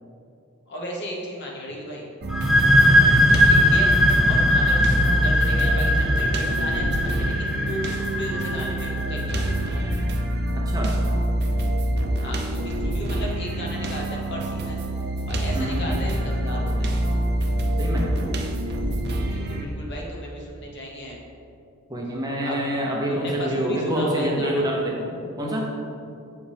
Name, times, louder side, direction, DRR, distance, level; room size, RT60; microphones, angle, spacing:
voice 1, 0.7-2.0 3.5-3.9 4.2-9.7 12.2-14.8 15.3-17.0 19.2-21.2 22.4-22.6 23.1-24.7, equal, 55° left, -2 dB, 1.1 m, -35 dB
sound 1, 2.2-19.6, right 1 dB, 50° right, 0.5 m, -26 dB
sound 2, 2.3-9.7, left 1 dB, ahead, 0.3 m, -20 dB
voice 2, 17.8-18.1 21.9-25.7, equal, 15° right, -2 dB, 0.8 m, -26 dB
7.2 x 5.1 x 3.4 m, 2.6 s
head